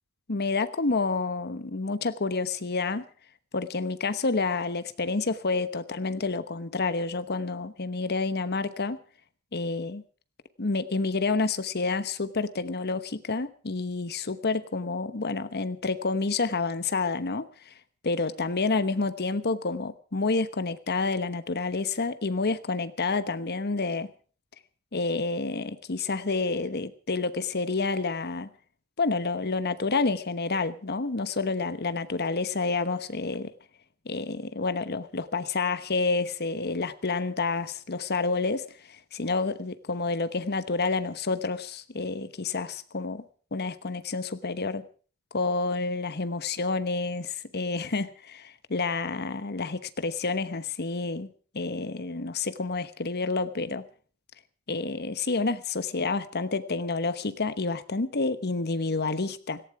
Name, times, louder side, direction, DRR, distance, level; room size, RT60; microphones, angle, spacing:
voice 1, 0.3-3.0 3.5-9.0 9.5-10.0 10.6-17.7 18.0-24.1 24.9-28.5 29.0-33.5 34.0-44.9 45.3-53.9 54.7-59.6, left 3 dB, 45° left, 12 dB, 1.1 m, -29 dB
17.5 x 15.5 x 4.8 m, 0.41 s
head